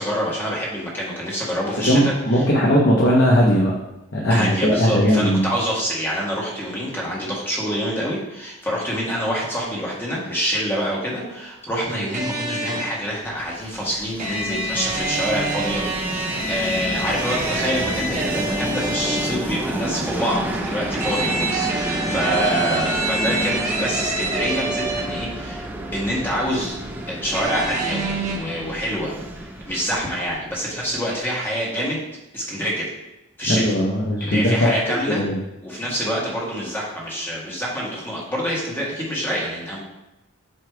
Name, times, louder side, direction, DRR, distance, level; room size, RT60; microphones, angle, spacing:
voice 1, 0.0-2.5 4.3-15.8 16.1-26.8 27.1-32.0 32.3-32.9 33.4-33.6 34.2-35.2 35.6-39.8, equal, 10° left, -5 dB, 1.6 m, -26 dB
voice 2, 1.9-3.7 4.1-5.4 33.5-34.7 35.1-35.4, equal, 50° left, -3 dB, 1.0 m, -18 dB
sound 1, 12.1-13.0 14.2-19.5 21.0-25.3 27.3-28.4, right 2 dB, 35° right, 1.1 m, -27 dB
Train, 13.3-31.0, right 1 dB, 10° right, 0.6 m, -30 dB
8.0 x 3.2 x 4.7 m, 0.94 s
head